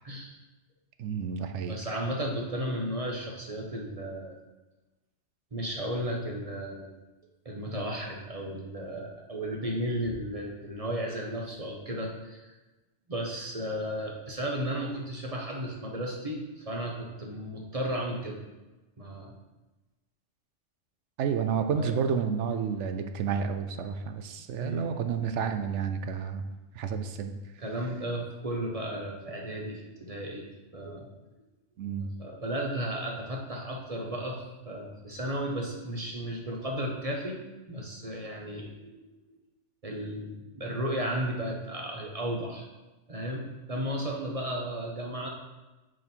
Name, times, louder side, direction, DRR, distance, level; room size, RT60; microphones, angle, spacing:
voice 1, 1.0-1.8 21.2-26.4 26.7-27.3 31.8-32.1, right 6 dB, 75° right, 8 dB, 0.9 m, -30 dB
voice 2, 1.7-4.4 5.5-6.9 7.4-12.6 13.1-18.4 19.0-19.3 21.7-21.9 24.6-24.8 27.6-30.5 30.7-31.1 32.0-37.4 37.7-39.4 39.8-42.6 43.1-45.3, equal, 30° right, -1 dB, 1.0 m, -34 dB
8.9 x 4.3 x 4.5 m, 1.1 s
omnidirectional pair, 1.2 m